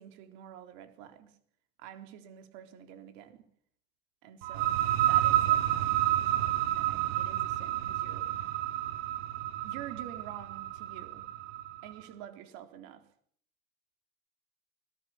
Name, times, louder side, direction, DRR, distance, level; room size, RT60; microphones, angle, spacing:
voice 1, 0.0-1.3 1.8-3.4 4.2-8.6 9.6-11.2 11.8-13.0, right 10 dB, 55° right, 7 dB, 4.0 m, -48 dB
sound 1, 4.4-11.9, right 13 dB, 85° right, 1.9 m, -30 dB
25.5 x 20.5 x 7.4 m, 0.63 s
cardioid pair, 180°, 30 cm